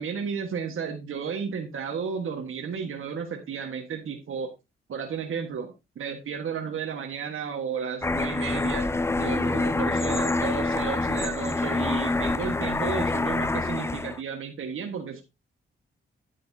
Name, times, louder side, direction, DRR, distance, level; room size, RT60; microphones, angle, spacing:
voice 1, 0.0-4.5 4.9-8.9 9.1-15.2, right 6 dB, 75° right, 3 dB, 1.5 m, -33 dB
sound 1, 8.0-14.2, left 2 dB, 10° left, 0.4 m, -26 dB
9.6 x 8.7 x 2.7 m, 0.25 s
cardioid pair, 85°, 21 cm